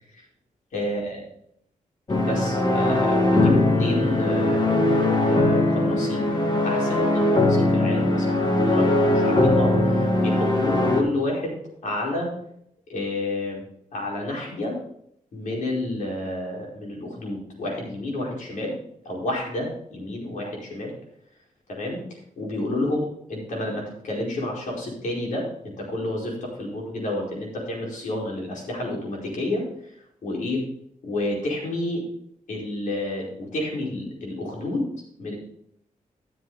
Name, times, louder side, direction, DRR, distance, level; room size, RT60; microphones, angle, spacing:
voice 1, 0.7-1.2 2.2-4.8 5.2-6.3 6.6-11.5 11.8-12.3 12.9-13.6 13.9-14.8 15.3-18.7 19.0-20.9 21.7-23.0 23.3-29.6 30.2-30.6 31.0-32.0 32.5-34.8 35.2-35.3, left 1 dB, 75° left, -3 dB, 4.9 m, -30 dB
sound 1, 2.1-11.0, left 2 dB, 35° left, 1.7 m, -20 dB
13.0 x 7.7 x 4.0 m, 0.69 s
wide cardioid pair, 125°, 13 cm